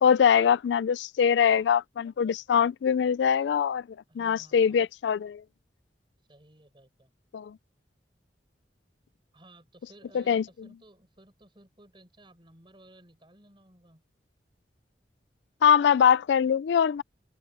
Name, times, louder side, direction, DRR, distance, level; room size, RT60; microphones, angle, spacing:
voice 1, 0.0-3.9 4.2-5.4 7.3-7.6 10.1-10.4 15.6-17.0, left 7 dB, 80° left, 0.3 m, -23 dB
voice 2, 4.1-4.8 6.3-7.1 9.3-14.0, right 1 dB, 30° right, 5.2 m, -56 dB
open air
head